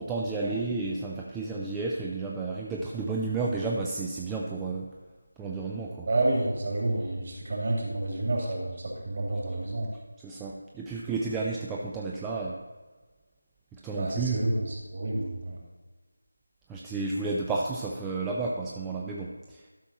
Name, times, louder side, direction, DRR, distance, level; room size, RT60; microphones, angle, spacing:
voice 1, 0.0-4.9 5.4-6.1 10.2-12.6 13.8-14.5 16.7-19.6, right 3 dB, 5° right, -3 dB, 0.3 m, -32 dB
voice 2, 6.1-9.9 14.0-15.6, right 2 dB, 40° right, -2 dB, 2.4 m, -29 dB
12.0 x 5.9 x 4.2 m, 1.3 s
figure-of-eight pair, 175°, 0 cm